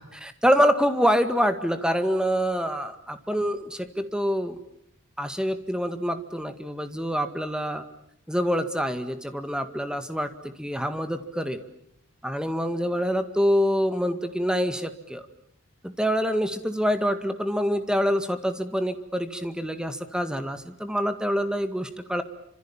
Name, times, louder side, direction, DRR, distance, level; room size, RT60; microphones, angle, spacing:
voice 1, 0.0-4.6 5.2-7.8 8.3-11.6 12.2-15.2 15.8-22.2, equal, 5° right, 9 dB, 1.9 m, -26 dB
30.0 x 26.5 x 7.3 m, 0.74 s
head